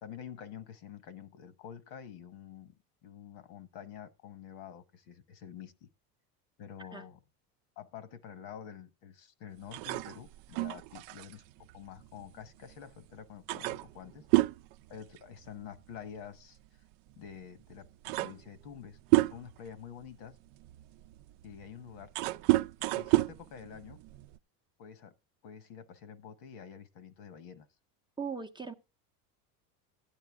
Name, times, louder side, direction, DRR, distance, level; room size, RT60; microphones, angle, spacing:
voice 1, 0.0-5.9 6.6-7.2 7.8-11.4 11.7-14.2 14.9-16.6 17.2-19.0 19.3-20.3 21.4-22.1 22.8-24.0 24.8-25.1 25.4-27.7, left 8 dB, 75° left, 1.5 m, -48 dB
sound 1, 9.7-12.7 13.1-13.2 13.5-15.7 15.9-16.2 17.2-17.3 17.7-19.7 20.3-24.4, right 19 dB, 60° right, 0.5 m, -30 dB
voice 2, 28.2-28.7, right 5 dB, 10° right, 0.6 m, -39 dB
12.0 x 9.2 x 3.5 m
supercardioid pair, 100°, 47 cm